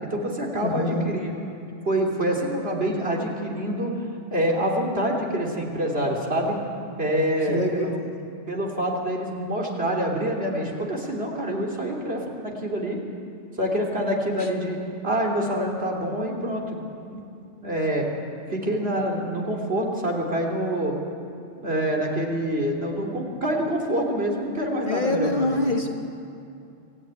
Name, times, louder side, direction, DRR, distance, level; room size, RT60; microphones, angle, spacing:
voice 1, 0.0-1.3 1.8-3.9 4.3-6.6 7.0-7.9 8.5-13.0 13.6-14.8 15.0-16.8 17.1-17.2 17.6-18.1 18.5-20.9 21.6-25.7, right 1 dB, 50° right, -1 dB, 3.1 m, -26 dB
voice 2, 0.6-1.1 7.5-8.3 14.4-14.5 24.8-25.9, left 2 dB, 40° left, 2 dB, 1.6 m, -26 dB
25.0 x 13.5 x 9.4 m, 2.6 s
omnidirectional pair, 1.3 m